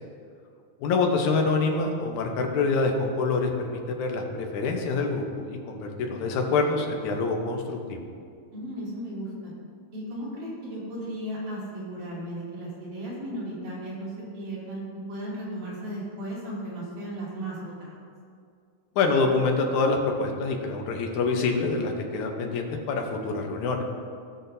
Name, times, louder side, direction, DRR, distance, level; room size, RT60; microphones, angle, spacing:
voice 1, 0.8-8.0 19.0-23.8, left 3 dB, 75° left, 2 dB, 2.3 m, -26 dB
voice 2, 8.5-9.5 9.9-18.0, right 1 dB, 85° right, -7 dB, 4.1 m, -35 dB
17.5 x 6.2 x 2.7 m, 2.3 s
omnidirectional pair, 3.5 m